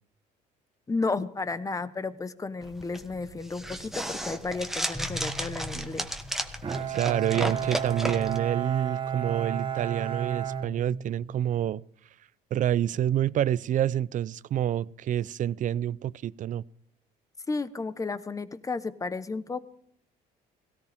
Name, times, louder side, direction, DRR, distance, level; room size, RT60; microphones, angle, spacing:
voice 1, 0.9-6.1 17.5-19.6, left 3 dB, 20° left, 1.0 m, -33 dB
sound 1, 2.6-8.4, equal, ahead, 1.4 m, -34 dB
Bowed string instrument, 6.6-11.5, right 7 dB, 30° right, 1.4 m, -32 dB
voice 2, 6.9-11.8 12.5-16.6, right 11 dB, 50° right, 0.5 m, -28 dB
17.5 x 16.5 x 3.6 m
cardioid pair, 110°, 17 cm